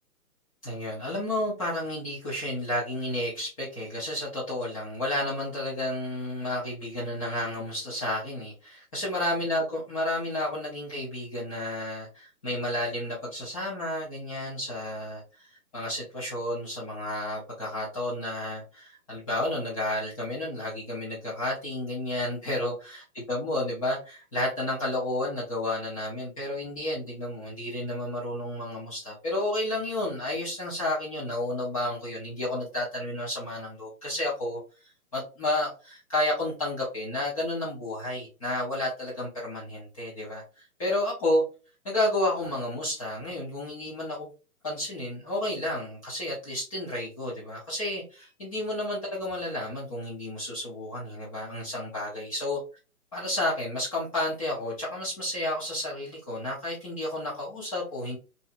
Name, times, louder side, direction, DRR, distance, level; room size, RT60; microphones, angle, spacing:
voice 1, 0.6-23.0 23.3-41.4 41.8-44.3 44.6-52.6 53.1-58.2, left 1 dB, 25° left, -7 dB, 0.7 m, -31 dB
2.7 x 2.2 x 2.6 m, 0.33 s
hypercardioid pair, 145°, 44 cm